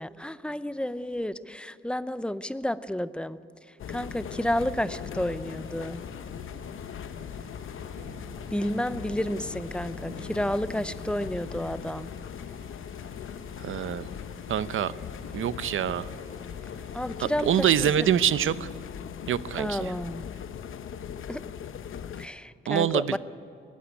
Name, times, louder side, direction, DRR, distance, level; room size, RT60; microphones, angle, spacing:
voice 1, 0.0-6.0 8.5-12.1 16.9-18.1 19.6-20.3 21.3-21.6 22.2-23.2, left 1 dB, 5° left, 14 dB, 0.6 m, -31 dB
sound 1, 3.8-22.3, left 8 dB, 75° left, 0.9 m, -39 dB
sound 2, 4.7-18.8, right 2 dB, 55° right, 6.3 m, -50 dB
voice 2, 13.6-14.1 14.5-14.9 15.3-16.1 17.2-18.7 19.3-19.9 22.7-23.2, right 10 dB, 75° right, 15 dB, 0.7 m, -25 dB
19.5 x 15.0 x 9.3 m, 2.8 s
wide cardioid pair, 115°, 21 cm